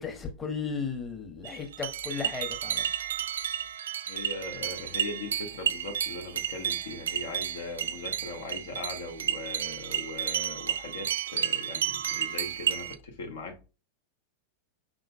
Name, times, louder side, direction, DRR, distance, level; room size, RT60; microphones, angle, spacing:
voice 1, 0.0-2.8, left 5 dB, 15° left, 1.1 m, -35 dB
sound 1, 1.4-13.0, right 9 dB, 65° right, 0.3 m, -32 dB
voice 2, 4.1-13.7, left 3 dB, 60° left, 0.9 m, -40 dB
5.6 x 3.8 x 2.2 m
figure-of-eight pair, 90°, 0 cm